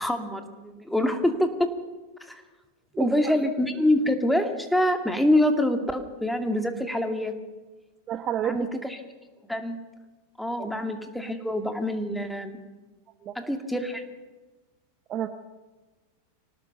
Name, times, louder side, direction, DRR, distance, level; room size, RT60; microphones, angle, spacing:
voice 1, 0.0-1.7 2.2-2.4 3.0-7.3 8.4-9.0 9.5-9.8 10.4-12.6 13.4-14.1, left 1 dB, ahead, 6 dB, 2.4 m, -25 dB
voice 2, 2.9-3.3 8.1-8.7 10.6-10.7 13.2-13.3 15.1-15.3, right 10 dB, 30° right, 10 dB, 1.1 m, -30 dB
24.5 x 18.5 x 6.9 m, 1.2 s
figure-of-eight pair, 90°, 0 cm